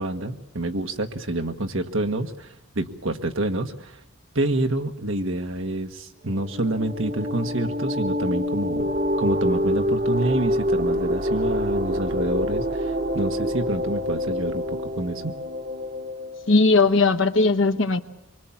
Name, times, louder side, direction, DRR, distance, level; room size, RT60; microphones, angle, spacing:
voice 1, 0.0-4.0 4.3-8.9 9.2-15.3, right 1 dB, 65° right, 5 dB, 1.5 m, -27 dB
sound 1, 6.3-16.6, equal, 45° right, 1.4 m, -26 dB
voice 2, 16.5-18.0, left 3 dB, 65° left, 9 dB, 1.1 m, -18 dB
24.5 x 24.0 x 7.3 m, 0.77 s
head